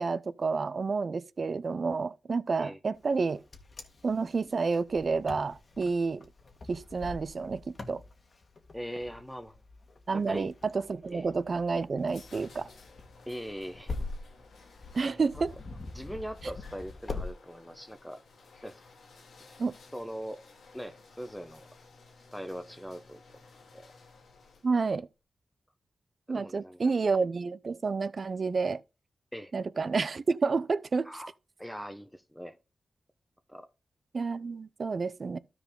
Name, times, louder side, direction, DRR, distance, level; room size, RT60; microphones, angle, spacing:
voice 1, 0.0-3.4 4.0-6.2 6.7-7.6 7.9-8.0 10.1-12.7 14.9-15.5 19.6-19.7 24.6-25.1 26.3-28.8 29.5-31.1 34.1-35.4, right 4 dB, 60° right, 0.5 m, -29 dB
Wind, 3.1-17.3, left 3 dB, 55° left, 1.5 m, -44 dB
voice 2, 8.7-9.6 10.1-10.5 11.1-11.3 13.3-13.9 15.3-15.4 15.9-18.2 18.6-18.8 19.4-19.5 19.9-20.4 20.7-21.6 22.3-23.4 23.7-23.9 26.3-27.0 29.3-29.5 31.0-31.3 31.6-32.6 33.5-33.7, equal, 5° left, 1.0 m, -41 dB
sound 1, 11.9-25.0, left 3 dB, 85° left, 1.8 m, -56 dB
13.0 x 4.7 x 3.6 m
cardioid pair, 45°, 0 cm